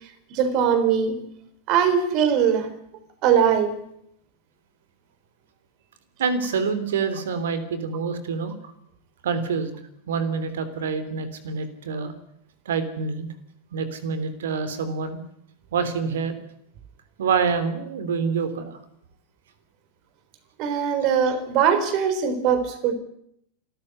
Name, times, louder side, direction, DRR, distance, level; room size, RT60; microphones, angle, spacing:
voice 1, 0.3-1.2 1.7-2.7 3.2-3.8 20.6-22.9, right 7 dB, 40° right, 12 dB, 4.1 m, -21 dB
voice 2, 6.2-8.5 9.2-9.7 10.1-12.1 12.6-13.3 13.7-15.2 15.7-16.3 17.2-18.8, right 5 dB, 60° right, 12 dB, 3.3 m, -26 dB
28.0 x 14.0 x 9.5 m, 0.72 s
figure-of-eight pair, 90°, 0 cm